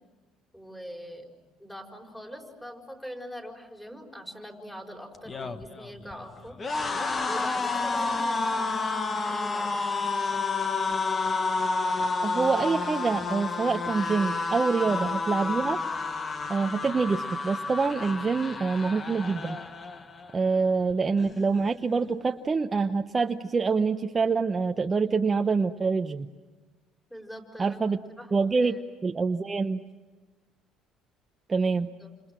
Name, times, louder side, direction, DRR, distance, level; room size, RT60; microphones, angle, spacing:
voice 1, 0.5-1.3 1.6-6.6 7.3-9.9 27.1-28.8 32.0-32.1, equal, 5° left, 3 dB, 4.8 m, -42 dB
sound 1, 5.1-20.3 20.7-20.9 21.2-22.0, left 3 dB, 25° left, 1.4 m, -30 dB
voice 2, 12.2-15.8 16.5-19.6 20.3-26.3 27.6-28.0 28.3-29.8 31.5-31.9, right 4 dB, 25° right, 6 dB, 0.8 m, -26 dB
29.5 x 27.0 x 7.6 m, 1.3 s
cardioid pair, 120°, 0 cm